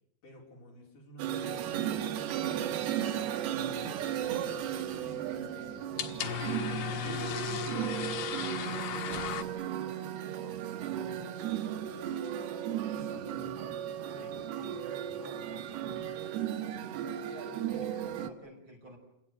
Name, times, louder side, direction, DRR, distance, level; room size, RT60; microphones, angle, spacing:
voice 1, 0.2-3.0 3.6-4.0 4.3-12.3 12.9-13.8 17.7-17.9 18.2-18.3, left 1 dB, 55° left, 0 dB, 5.8 m, -53 dB
sound 1, 1.2-18.3, right 10 dB, 85° right, 3.3 m, -35 dB
sound 2, 4.2-9.4, left 9 dB, 85° left, 3.5 m, -37 dB
voice 2, 14.1-15.7 17.3-19.0, right 1 dB, 30° right, 1 dB, 6.4 m, -51 dB
28.5 x 19.0 x 9.2 m, 0.82 s
omnidirectional pair, 4.4 m